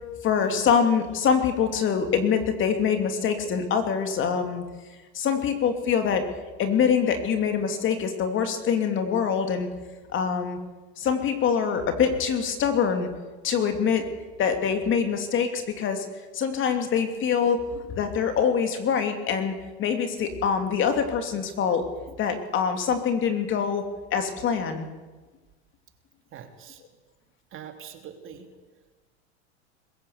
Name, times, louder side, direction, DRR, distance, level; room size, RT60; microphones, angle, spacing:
voice 1, 0.2-4.6 5.1-6.3 6.6-9.7 10.1-10.6 11.0-13.1 13.4-14.0 14.4-16.1 16.3-21.8 22.2-23.8 24.1-24.9, left 7 dB, 35° left, 6 dB, 2.8 m, -24 dB
voice 2, 26.3-26.8 27.5-28.5, right 8 dB, 40° right, 5 dB, 2.8 m, -43 dB
22.0 x 14.5 x 8.4 m, 1.3 s
supercardioid pair, 115°, 33 cm